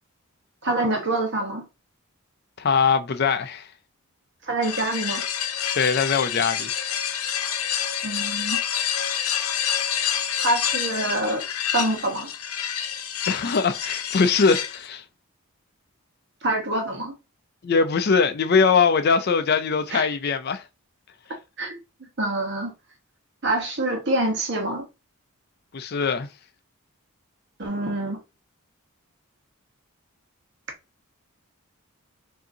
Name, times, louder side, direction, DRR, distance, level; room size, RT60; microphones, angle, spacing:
voice 1, 0.6-1.7 4.4-5.2 8.0-8.6 10.4-11.4 11.7-12.3 16.4-17.1 19.9-20.0 21.6-21.8 22.2-22.7 23.4-24.9 27.6-28.2, right 1 dB, 50° right, 1.1 m, -26 dB
voice 2, 2.6-3.7 5.8-6.7 13.3-15.0 17.6-20.6 25.7-26.3, left 5 dB, 45° left, 0.4 m, -21 dB
sound 1, 4.6-14.9, left 9 dB, 75° left, 0.7 m, -28 dB
5.1 x 2.7 x 2.7 m
head